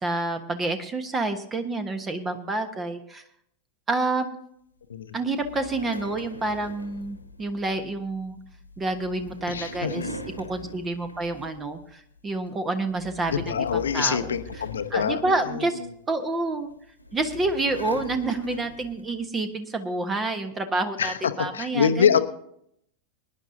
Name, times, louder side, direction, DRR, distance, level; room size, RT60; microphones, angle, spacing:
voice 1, 0.0-3.2 3.9-4.3 5.1-8.4 8.8-10.1 10.4-14.4 14.9-15.8 16.1-16.7 17.1-22.2, right 2 dB, 20° right, 9 dB, 1.2 m, -28 dB
sound 1, 5.3-11.8 12.2-12.5 12.9-15.9 16.7-19.1, equal, 85° left, 1.4 m, -41 dB
voice 2, 9.5-10.2 13.3-15.6 21.0-22.2, left 7 dB, 65° left, 9 dB, 0.9 m, -25 dB
23.5 x 10.5 x 2.7 m, 0.71 s
figure-of-eight pair, 90°, 0 cm